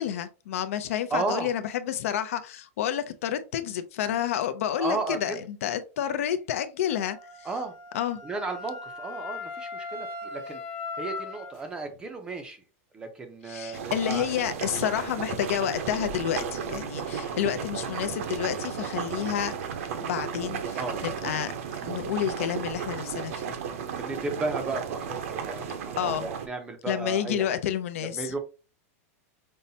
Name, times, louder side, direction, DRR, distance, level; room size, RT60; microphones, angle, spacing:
voice 1, 0.0-7.5 7.9-8.2 13.5-19.5 20.0-21.5 21.8-23.5 26.0-26.3 26.9-28.3, left 10 dB, 65° left, 0.5 m, -30 dB
voice 2, 1.1-1.5 4.7-5.4 7.4-7.7 8.2-10.6 11.0-12.6 12.9-14.3 15.0-15.1 20.7-21.0 23.9-27.5 28.1-28.4, right 3 dB, 10° right, 0.5 m, -34 dB
Wind instrument woodwind instrument, 6.9-11.6, left 4 dB, 30° left, 0.7 m, -39 dB
sound 1, 13.7-26.5, right 7 dB, 65° right, 0.7 m, -34 dB
5.4 x 2.1 x 2.7 m
supercardioid pair, 175°, 8 cm